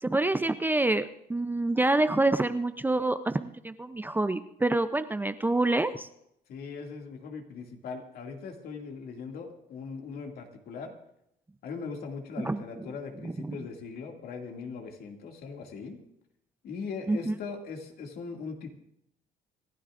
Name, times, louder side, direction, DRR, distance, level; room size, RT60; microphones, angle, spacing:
voice 1, 0.0-6.1 12.4-12.9 13.2-13.6 17.1-17.3, right 2 dB, 10° right, 10 dB, 0.5 m, -27 dB
voice 2, 6.5-10.9 11.6-16.0 16.6-18.7, left 5 dB, 65° left, 2 dB, 2.3 m, -40 dB
27.0 x 12.5 x 2.5 m, 0.79 s
cardioid pair, 110°, 17 cm